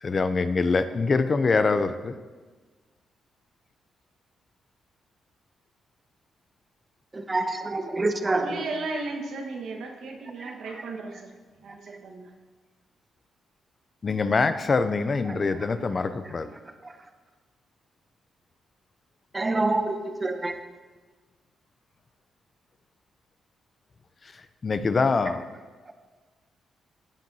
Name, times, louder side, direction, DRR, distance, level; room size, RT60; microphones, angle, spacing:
voice 1, 0.0-2.2 14.0-16.5 24.3-25.4, left 4 dB, 35° left, 11 dB, 0.5 m, -24 dB
voice 2, 7.1-8.6 10.4-10.6 15.6-15.7 16.8-17.0 19.3-20.6 25.9-26.0, right 2 dB, 20° right, 7 dB, 0.6 m, -27 dB
voice 3, 8.3-11.3 11.6-12.3, right 3 dB, 75° right, 2 dB, 1.4 m, -35 dB
15.5 x 7.3 x 2.8 m, 1.4 s
cardioid pair, 120°, 0 cm